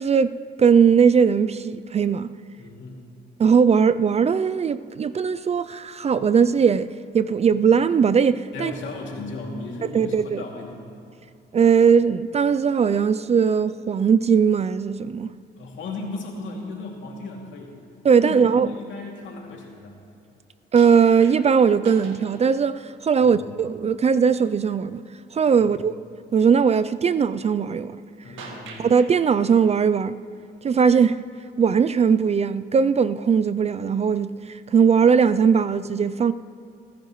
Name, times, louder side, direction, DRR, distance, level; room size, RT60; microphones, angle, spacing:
voice 1, 0.0-2.3 3.4-8.7 9.9-10.4 11.5-15.3 18.0-18.7 20.7-25.0 25.3-25.9 26.3-28.0 28.8-30.2 30.6-31.2 31.6-36.3, right 6 dB, 35° right, 0.4 m, -19 dB
voice 2, 2.6-3.0 8.5-10.7 15.6-17.7 18.2-18.4 18.8-19.9 23.2-23.4 25.6-25.8 28.2-28.8, left 3 dB, 75° left, 2.6 m, -36 dB
sound 1, 20.8-22.7 23.3-23.4 28.4-29.2 30.7-30.8, right 4 dB, 80° right, 1.8 m, -42 dB
29.5 x 10.0 x 3.1 m
cardioid pair, 90°, 20 cm